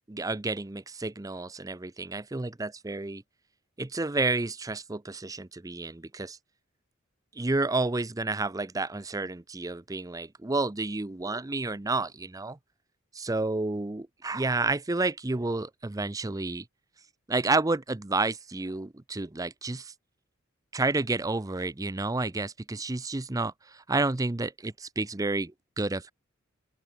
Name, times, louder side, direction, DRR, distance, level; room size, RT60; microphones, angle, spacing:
voice 1, 0.1-3.2 3.8-6.4 7.3-12.6 13.1-16.7 17.3-19.9 20.7-26.1, right 3 dB, 15° right, 0.6 m, -30 dB
open air
head